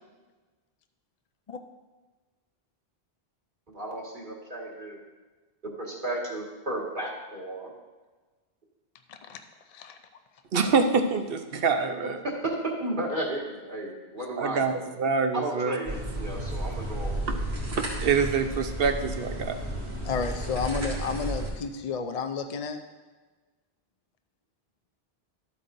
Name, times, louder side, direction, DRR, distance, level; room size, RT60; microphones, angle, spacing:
voice 1, 3.7-5.0 5.8-7.7 12.2-12.3 12.8-14.8 15.3-17.5, right 1 dB, 50° right, -3 dB, 2.1 m, -34 dB
voice 2, 9.1-9.4 9.7-10.0 20.0-22.8, left 5 dB, 45° left, 6 dB, 0.6 m, -31 dB
voice 3, 10.5-12.2 14.4-15.8 17.3-17.4 17.7-19.6, right 5 dB, 65° right, 7 dB, 1.0 m, -26 dB
sound 1, 15.9-21.5, right 1 dB, 90° right, 2.8 m, -33 dB
13.0 x 8.3 x 2.6 m, 1.3 s
omnidirectional pair, 1.0 m